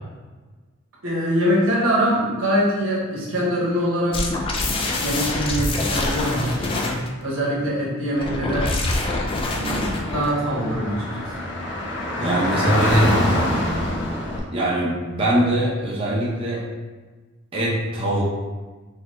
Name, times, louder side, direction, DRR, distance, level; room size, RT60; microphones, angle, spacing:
voice 1, 1.0-4.2 4.6-8.7 9.5-11.3 12.6-12.9, equal, 80° right, -5 dB, 1.0 m, -24 dB
sound 1, 4.1-7.1 8.1-10.4, left 2 dB, 25° left, 0.3 m, -25 dB
Car / Traffic noise roadway noise, 9.3-14.4, left 1 dB, 60° left, 0.6 m, -25 dB
voice 2, 12.2-13.1 14.5-16.6 17.5-18.2, right 1 dB, 25° right, -6 dB, 0.6 m, -22 dB
3.7 x 2.1 x 3.1 m, 1.3 s
head